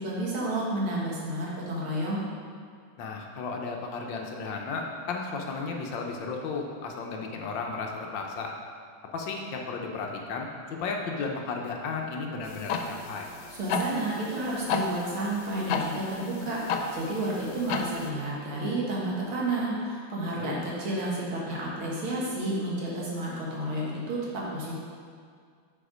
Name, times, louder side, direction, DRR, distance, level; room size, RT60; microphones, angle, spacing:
voice 1, 0.0-2.2 13.5-24.7, right 1 dB, 90° right, -5 dB, 2.3 m, -31 dB
voice 2, 3.0-8.5 9.1-13.3 20.4-20.6, left 4 dB, 70° left, 1 dB, 1.4 m, -34 dB
sound 1, 12.4-18.1, left 4 dB, 90° left, 1.4 m, -33 dB
7.1 x 4.3 x 5.0 m, 2.1 s
omnidirectional pair, 2.2 m